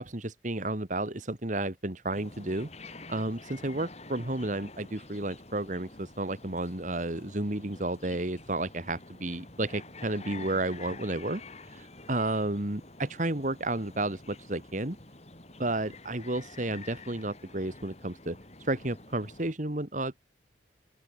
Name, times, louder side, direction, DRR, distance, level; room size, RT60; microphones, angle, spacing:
voice 1, 0.0-2.7 3.1-11.4 11.7-15.0 15.6-20.2, right 2 dB, 40° right, 1.9 m, -32 dB
sound 1, 2.1-19.5, left 3 dB, 35° left, 4.9 m, -48 dB
open air
head